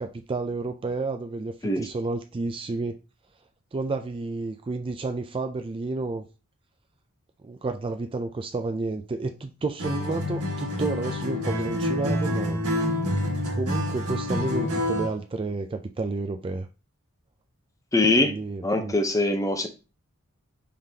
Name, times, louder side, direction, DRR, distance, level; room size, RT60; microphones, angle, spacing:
voice 1, 0.0-3.0 3.7-6.3 7.4-12.6 13.5-16.7 18.2-18.9, right 3 dB, 25° right, 0.3 m, -31 dB
Acoustic guitar, 9.8-15.2, left 1 dB, 85° right, 1.5 m, -27 dB
voice 2, 17.9-18.3 18.6-19.7, left 2 dB, 15° left, 0.6 m, -22 dB
5.0 x 3.8 x 2.7 m
head